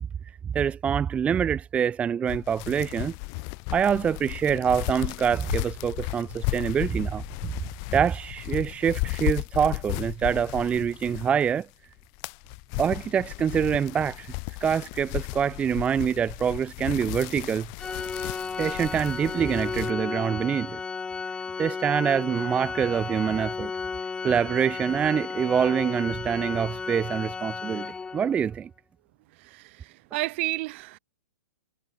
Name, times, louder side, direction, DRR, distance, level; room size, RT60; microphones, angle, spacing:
voice 1, 0.5-3.1 3.7-7.5 7.9-11.7 12.8-17.7 18.6-20.8 21.3-23.7 24.2-28.7, right 7 dB, 15° right, 0.7 m, -25 dB
sound 1, 2.3-11.6 12.0-19.9, left 40 dB or more, 35° left, 6.7 m, -34 dB
Organ, 17.8-28.5, left 5 dB, 10° left, 1.5 m, -34 dB
voice 2, 29.3-31.0, right 21 dB, 40° right, 2.2 m, -32 dB
hypercardioid pair, 145°, 9 cm